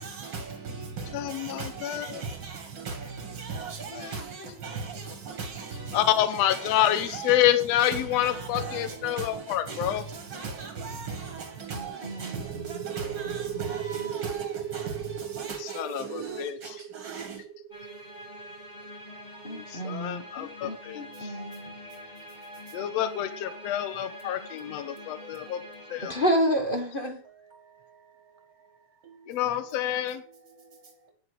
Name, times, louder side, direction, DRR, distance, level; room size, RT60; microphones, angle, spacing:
voice 1, 0.0-6.2 6.5-7.4 7.8-16.4 16.9-17.3, right 5 dB, 45° right, 2.1 m, -38 dB
voice 2, 1.1-2.2 4.0-4.1 5.9-10.0 15.8-16.6 19.5-21.3 22.7-25.6 25.9-26.2 29.3-30.2, left 12 dB, 65° left, 2.1 m, -28 dB
voice 3, 11.7-12.4 12.7-12.8 19.4-21.8 26.0-27.2, equal, 30° left, 0.9 m, -30 dB
sound 1, 12.3-19.8, right 9 dB, 80° right, 2.2 m, -37 dB
sound 2, 17.7-26.4, equal, 15° left, 2.6 m, -45 dB
9.9 x 8.5 x 6.6 m
omnidirectional pair, 3.3 m